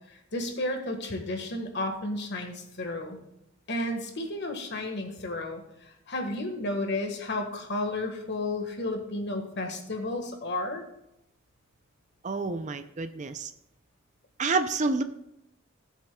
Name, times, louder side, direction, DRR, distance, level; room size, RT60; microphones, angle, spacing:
voice 1, 0.1-3.2 3.7-10.8, left 2 dB, 50° left, 4 dB, 1.6 m, -32 dB
voice 2, 12.2-13.5 14.4-15.0, right 3 dB, 35° right, 9 dB, 0.5 m, -28 dB
16.5 x 7.4 x 2.3 m, 0.84 s
head